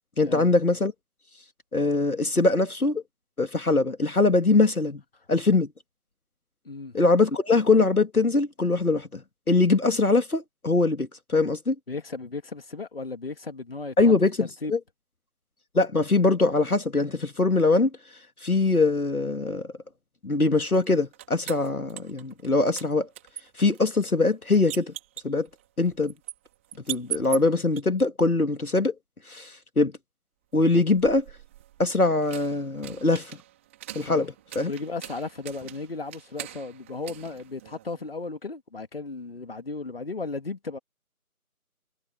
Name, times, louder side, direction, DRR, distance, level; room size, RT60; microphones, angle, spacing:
voice 1, 0.2-0.9 1.7-3.0 3.4-5.0 5.3-5.7 6.9-9.2 9.5-11.7 14.0-14.8 15.7-17.9 18.4-19.6 20.2-23.1 23.6-24.9 25.2-25.5 25.8-26.1 26.9-28.9 29.3-29.9 30.5-31.2 31.8-33.3 34.0-34.3 34.6-34.7, left 3 dB, 75° left, 2.2 m, -22 dB
voice 2, 6.6-7.0 11.9-13.9 14.4-14.8 30.8-30.9 34.0-34.3 34.6-40.8, left 3 dB, 40° left, 3.0 m, -35 dB
sound 1, 20.6-22.5 22.8-27.8 30.6-38.1, right 13 dB, 10° right, 3.6 m, -42 dB
figure-of-eight pair, 165°, 45 cm